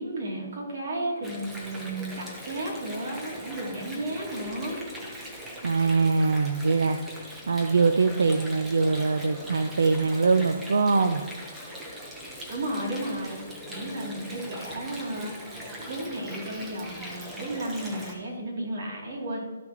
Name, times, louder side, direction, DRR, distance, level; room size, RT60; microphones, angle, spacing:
voice 1, 0.0-4.8 12.5-19.4, right 1 dB, 50° right, -3 dB, 2.8 m, -33 dB
Water, 1.2-18.1, equal, 5° right, 1.0 m, -41 dB
voice 2, 5.6-11.2, right 4 dB, 85° right, 8 dB, 0.5 m, -23 dB
13.0 x 5.9 x 3.0 m, 1.2 s
hypercardioid pair, 165°, 0 cm